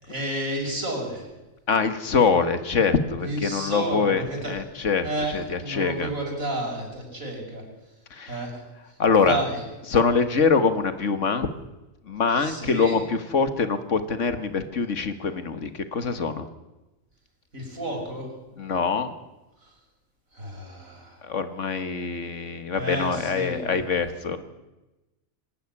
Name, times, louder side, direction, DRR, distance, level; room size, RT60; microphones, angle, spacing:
voice 1, 0.0-1.3 3.2-4.6 5.0-7.6 8.3-8.6 9.2-9.6 12.3-13.0 17.5-18.3 19.6-19.7 20.3-21.2 22.7-23.7, right 1 dB, 80° right, 0 dB, 6.4 m, -31 dB
voice 2, 1.7-5.1 5.3-6.1 8.1-8.4 9.0-9.4 9.9-11.5 12.1-16.4 18.6-19.2 21.2-24.4, left 5 dB, 65° left, 10 dB, 1.8 m, -24 dB
25.5 x 12.5 x 9.7 m, 1.1 s
omnidirectional pair, 1.4 m